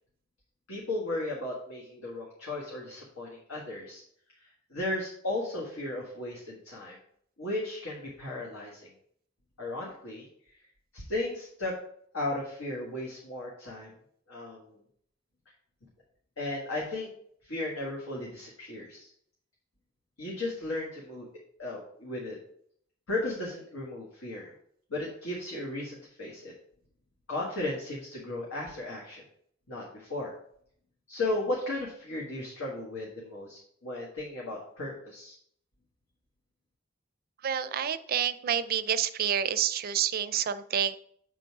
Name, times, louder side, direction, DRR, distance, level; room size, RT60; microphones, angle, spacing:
voice 1, 0.7-4.0 4.4-7.0 7.4-8.9 9.6-10.3 10.9-11.7 12.1-13.9 14.3-14.8 16.4-17.1 17.4-19.1 20.2-21.3 21.6-22.4 23.1-24.5 24.9-26.5 27.3-29.2 29.7-30.3 31.1-35.3, left 2 dB, 85° left, -4 dB, 1.6 m, -35 dB
voice 2, 37.4-41.0, right 9 dB, 45° right, 13 dB, 0.4 m, -28 dB
8.0 x 3.9 x 4.7 m, 0.65 s
head